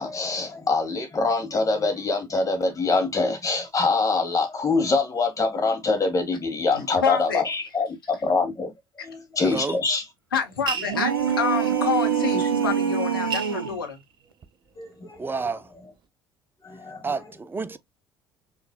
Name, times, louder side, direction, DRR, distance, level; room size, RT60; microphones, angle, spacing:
voice 1, 0.0-8.7 9.0-10.0 14.8-15.4 16.6-17.1, left 3 dB, 30° left, 1.8 m, -24 dB
voice 2, 6.7-7.4 10.3-14.0, left 6 dB, 85° left, 1.1 m, -28 dB
voice 3, 9.4-9.8 15.2-15.7 17.0-17.8, right 4 dB, 20° right, 0.5 m, -30 dB
sound 1, 10.7-11.6 12.7-12.8 13.1-14.7 15.2-15.8, right 6 dB, 45° right, 0.9 m, -33 dB
sound 2, 10.8-13.8, right 8 dB, 85° right, 0.6 m, -24 dB
6.0 x 3.2 x 2.2 m
figure-of-eight pair, 55°, 11 cm